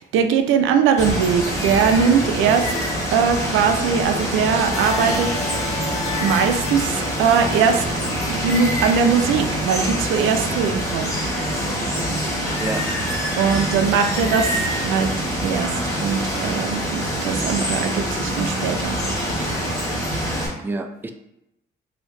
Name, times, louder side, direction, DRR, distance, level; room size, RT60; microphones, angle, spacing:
voice 1, 0.0-2.7 3.1-5.3 6.2-7.8 8.3-11.7 13.4-14.5 14.8-15.1 15.4-15.7 16.0-19.0, right 6 dB, 90° right, 6 dB, 0.4 m, -20 dB
Water, 1.0-20.5, equal, 15° left, 1.4 m, -25 dB
sound 1, 4.7-10.0, left 4 dB, 35° left, 0.6 m, -34 dB
voice 2, 20.5-21.1, right 3 dB, 10° right, 6 dB, 0.3 m, -31 dB
3.1 x 2.7 x 3.2 m, 0.87 s
cardioid pair, 90°, 20 cm